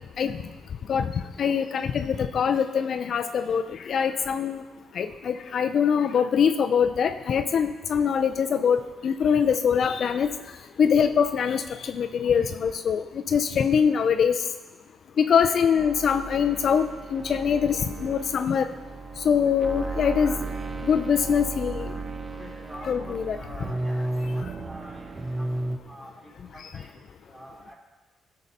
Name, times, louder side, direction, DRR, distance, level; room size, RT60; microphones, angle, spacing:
voice 1, 1.4-4.6 5.0-10.3 10.8-14.3 15.2-16.9 17.1-18.7 19.2-20.4 20.8-21.9 22.8-23.4, left 7 dB, 60° left, 8 dB, 0.5 m, -23 dB
sound 1, 15.8-25.8, right 2 dB, 30° right, 0.6 m, -34 dB
voice 2, 22.3-24.0 24.3-25.1 25.4-25.5 25.9-26.9 27.3-27.7, equal, 15° right, -4 dB, 3.8 m, -45 dB
14.5 x 6.5 x 4.2 m, 1.2 s
cardioid pair, 90°, 0 cm